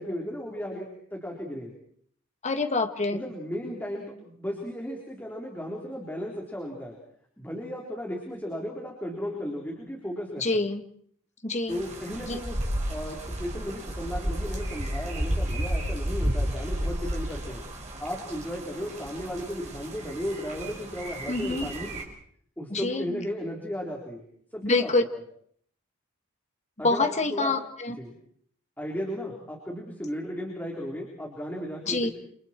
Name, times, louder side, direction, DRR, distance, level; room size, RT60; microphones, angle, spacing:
voice 1, 0.0-1.7 3.1-7.0 7.4-10.6 11.7-12.6 12.9-17.6 18.0-22.0 22.6-24.2 24.5-24.9 26.8-27.5 28.0-28.1 28.8-32.1, equal, 10° left, -1 dB, 4.0 m, -35 dB
voice 2, 2.4-3.2 10.4-10.8 11.4-11.8 12.3-12.4 21.3-21.7 22.7-23.2 24.6-25.0 26.8-28.0 31.9-32.1, left 3 dB, 35° left, 7 dB, 1.8 m, -26 dB
sound 1, 11.7-22.0, equal, 30° right, 5.2 m, -32 dB
29.0 x 27.5 x 4.6 m, 0.63 s
head